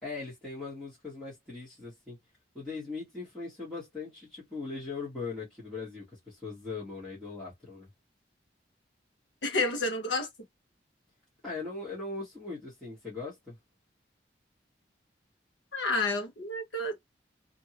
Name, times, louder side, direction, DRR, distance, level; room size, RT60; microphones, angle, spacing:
voice 1, 0.0-2.2 2.5-7.9 11.4-13.6, left 3 dB, 5° left, 1.6 m, -40 dB
voice 2, 9.4-10.3 15.7-17.0, left 2 dB, 90° left, 1.2 m, -30 dB
2.8 x 2.7 x 2.9 m
head